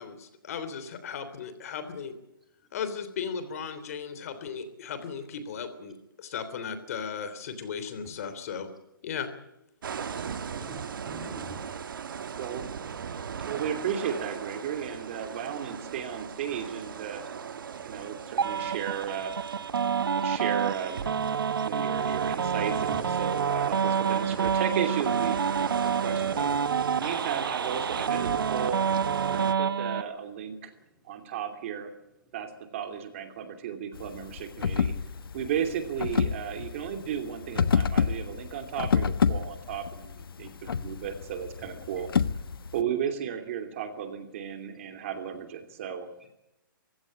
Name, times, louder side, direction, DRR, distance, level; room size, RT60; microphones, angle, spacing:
voice 1, 0.0-2.1 2.7-8.7 9.0-9.3, left 6 dB, 40° left, 11 dB, 3.2 m, -36 dB
sound 1, 9.8-29.5, right 7 dB, 65° right, 1.9 m, -38 dB
voice 2, 10.2-11.6 22.9-23.2 30.4-31.3 31.9-32.4 32.8-32.9 33.3-35.4 41.6-42.2 42.5-43.2 43.7-44.1 44.5-45.1 45.6-46.3, right 1 dB, ahead, 3 dB, 3.3 m, -55 dB
voice 3, 13.5-17.2 17.8-19.3 20.0-21.1 21.6-25.4 25.8-26.5 26.9-28.8 29.3-30.7 31.0-31.9 32.3-34.9 35.3-42.1 42.7-46.1, right 8 dB, 35° right, 7 dB, 2.8 m, -34 dB
sound 2, 18.4-30.0, right 7 dB, 85° right, 1.3 m, -28 dB
sound 3, 33.9-42.8, left 6 dB, 80° left, 1.3 m, -29 dB
24.0 x 16.0 x 8.7 m, 0.88 s
hypercardioid pair, 170°, 12 cm